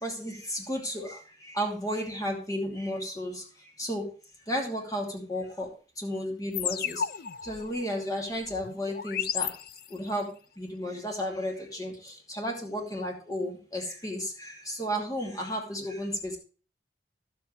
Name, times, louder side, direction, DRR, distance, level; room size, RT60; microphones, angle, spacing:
voice 1, 0.0-3.4 3.8-4.0 4.5-5.7 6.0-7.0 7.4-9.5 9.9-10.3 10.6-16.4, equal, 20° left, 1 dB, 2.6 m, -33 dB
sound 1, 6.5-10.2, left 8 dB, 55° left, 0.5 m, -34 dB
12.0 x 7.8 x 3.2 m, 0.37 s
head